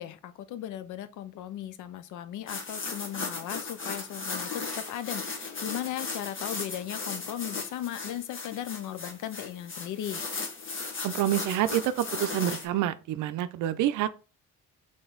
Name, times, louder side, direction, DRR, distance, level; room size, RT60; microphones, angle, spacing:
voice 1, 0.0-10.2, left 11 dB, 80° left, 0.6 m, -37 dB
sound 1, 2.5-12.7, left 4 dB, 40° left, 1.4 m, -36 dB
voice 2, 11.0-14.1, right 12 dB, 85° right, 0.5 m, -27 dB
4.0 x 3.3 x 3.8 m
cardioid pair, 90°, 30 cm